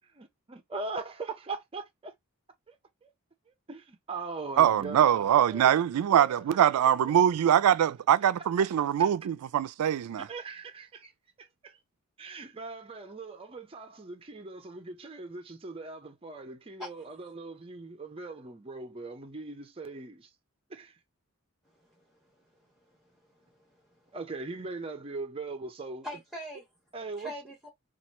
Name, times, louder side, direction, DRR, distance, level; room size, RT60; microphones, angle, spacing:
voice 1, 0.1-2.1 2.7-2.8 3.0-3.1 3.5-5.7 6.1-6.6 7.0-7.1 9.0-9.1 10.1-11.1 11.4-11.8 12.2-20.3 20.7-21.0 24.1-26.1 26.9-27.3, right 3 dB, 25° right, 0.5 m, -40 dB
voice 2, 4.6-10.3, right 9 dB, 85° right, 0.3 m, -23 dB
voice 3, 21.7-24.1 26.0-26.6 27.2-27.7, equal, ahead, 1.0 m, -45 dB
3.0 x 2.4 x 4.2 m
head